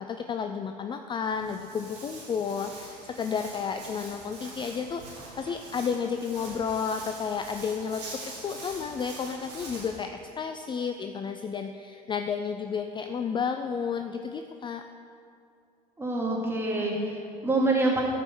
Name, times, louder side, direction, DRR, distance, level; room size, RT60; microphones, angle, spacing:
voice 1, 0.0-14.8, left 6 dB, 25° left, 7 dB, 0.5 m, -32 dB
Walk footsteps, 1.2-10.0, right 2 dB, 85° right, 2.8 m, -44 dB
voice 2, 16.0-18.0, right 2 dB, 10° right, -3 dB, 2.6 m, -26 dB
13.0 x 5.4 x 6.3 m, 2.5 s
hypercardioid pair, 70°, 20 cm